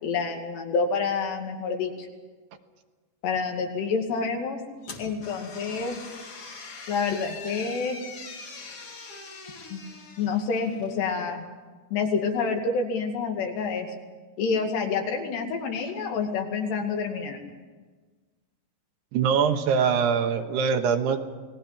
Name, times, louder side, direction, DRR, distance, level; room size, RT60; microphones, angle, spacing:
voice 1, 0.0-2.1 3.2-4.6 5.0-6.0 6.9-8.0 9.7-9.8 10.2-11.4 11.9-13.9 14.4-17.4, left 5 dB, 75° left, 3 dB, 4.4 m, -28 dB
sound 1, 4.8-11.0, left 4 dB, 40° left, 2.7 m, -43 dB
voice 2, 19.1-21.2, right 6 dB, 75° right, 6 dB, 3.3 m, -23 dB
28.5 x 20.0 x 5.9 m, 1.4 s
omnidirectional pair, 4.9 m